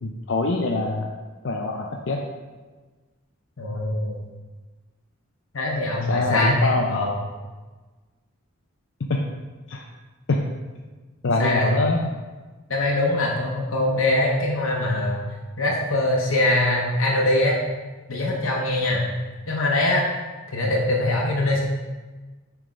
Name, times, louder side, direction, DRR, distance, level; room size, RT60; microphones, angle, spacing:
voice 1, 0.0-1.1 1.4-2.2 6.1-7.0 9.1-9.2 9.7-9.8 10.3-10.4 11.2-12.0, left 2 dB, 65° left, 0 dB, 0.5 m, -24 dB
voice 2, 3.6-4.2 5.5-7.1 11.4-11.7 12.7-15.2 15.6-17.6 18.1-19.1 19.5-20.1 20.5-21.6, left 1 dB, 80° left, -3 dB, 0.9 m, -22 dB
7.2 x 3.5 x 5.1 m, 1.3 s
head